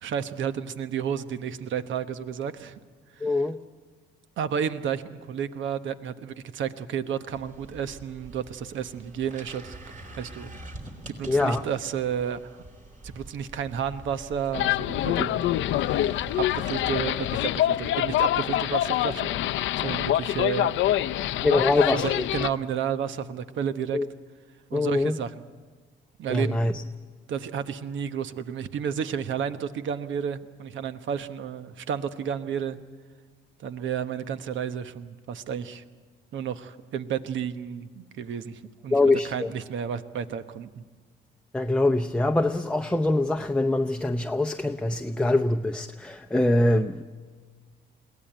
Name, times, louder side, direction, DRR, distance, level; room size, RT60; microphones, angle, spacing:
voice 1, 0.0-2.8 3.2-3.4 4.4-9.8 10.2-10.6 11.1-12.6 13.0-15.5 16.4-20.8 21.2-21.6 21.9-24.0 24.7-25.5 26.2-26.6 27.3-32.8 33.6-35.8 36.3-39.0 39.2-40.8, right 8 dB, 75° right, 11 dB, 1.1 m, -32 dB
voice 2, 3.2-3.6 11.3-11.6 21.4-22.2 23.9-24.1 24.7-25.2 26.3-26.7 38.9-39.5 41.5-47.0, left 2 dB, 5° left, 5 dB, 0.7 m, -24 dB
sound 1, 7.3-17.9, right 2 dB, 40° right, 3.3 m, -46 dB
sound 2, 14.5-22.5, left 13 dB, 80° left, 0.6 m, -25 dB
22.0 x 17.0 x 9.2 m, 1.5 s
cardioid pair, 90°, 20 cm